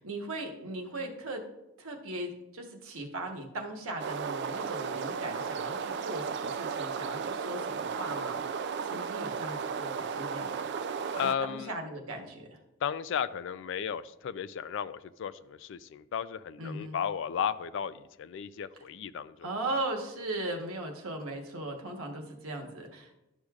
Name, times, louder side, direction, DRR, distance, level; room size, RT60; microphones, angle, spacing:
voice 1, 0.0-1.4 1.8-8.4 8.8-10.5 11.2-12.6 16.6-17.0 19.4-23.2, right 2 dB, 85° right, 2 dB, 1.2 m, -38 dB
sound 1, 4.0-11.3, right 6 dB, 55° right, 0.3 m, -34 dB
voice 2, 11.1-11.7 12.8-19.7, left 8 dB, 60° left, 15 dB, 0.3 m, -34 dB
11.5 x 6.4 x 2.4 m, 0.94 s
head